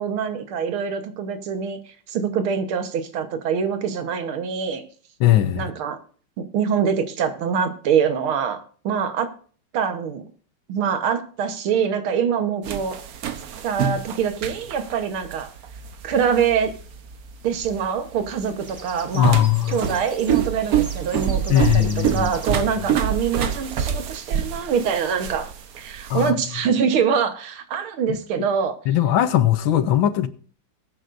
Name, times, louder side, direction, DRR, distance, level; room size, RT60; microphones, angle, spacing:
voice 1, 0.0-1.8 2.1-4.8 5.6-6.0 6.5-9.3 9.7-10.2 10.7-13.0 13.6-15.5 16.0-16.8 17.4-25.5 25.8-28.8, right 7 dB, 75° right, 2.0 m, -24 dB
voice 2, 5.2-5.6 19.1-19.8 21.5-22.6 26.1-26.3 28.9-30.3, left 12 dB, 70° left, 1.5 m, -19 dB
sound 1, 12.6-26.3, right 9 dB, 55° right, 1.1 m, -27 dB
sound 2, 16.7-17.2 18.0-22.7 23.6-23.7 24.2-24.3 24.7-25.0 25.4-25.5 25.8-26.0, right 1 dB, 15° right, 1.4 m, -43 dB
20.5 x 9.3 x 2.6 m
omnidirectional pair, 2.4 m